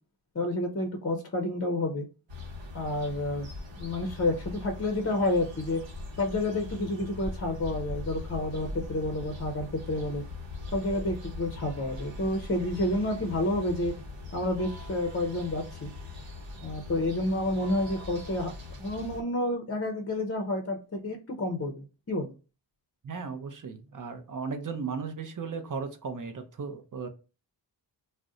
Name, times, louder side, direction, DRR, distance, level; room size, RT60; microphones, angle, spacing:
voice 1, 0.3-2.1 2.7-3.5 3.8-5.8 6.2-10.2 10.7-13.9 14.3-15.9 16.6-18.5 18.8-22.3, left 1 dB, 30° left, 3 dB, 0.6 m, -29 dB
sound 1, 2.3-19.2, left 2 dB, 75° right, 0.9 m, -41 dB
voice 2, 23.0-27.1, right 5 dB, 45° right, 5 dB, 0.6 m, -36 dB
2.5 x 2.1 x 3.7 m, 0.32 s
wide cardioid pair, 65°, 45 cm